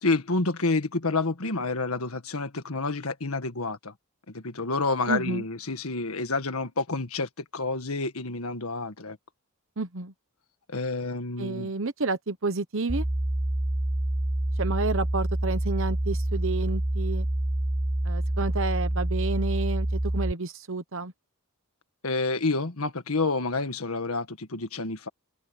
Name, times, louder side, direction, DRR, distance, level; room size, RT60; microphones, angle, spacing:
voice 1, 0.0-3.9 4.3-9.2 10.7-11.7 22.0-25.1, left 3 dB, 80° left, 1.7 m, -29 dB
voice 2, 5.1-5.4 9.8-10.1 11.4-13.0 14.6-17.3 18.0-21.1, right 3 dB, 65° right, 1.1 m, -30 dB
sound 1, 12.9-20.3, right 1 dB, 10° right, 0.5 m, -27 dB
open air
head